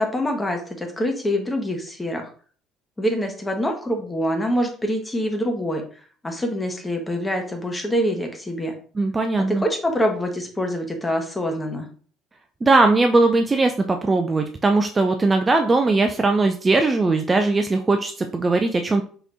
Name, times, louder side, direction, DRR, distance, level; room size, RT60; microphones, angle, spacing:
voice 1, 0.0-2.3 3.0-5.8 6.2-8.7 9.5-11.9, equal, 15° left, 3 dB, 1.2 m, -25 dB
voice 2, 9.0-9.6 12.6-19.0, right 3 dB, 25° right, 6 dB, 0.4 m, -19 dB
4.9 x 3.2 x 2.6 m, 0.43 s
figure-of-eight pair, 55°, 0 cm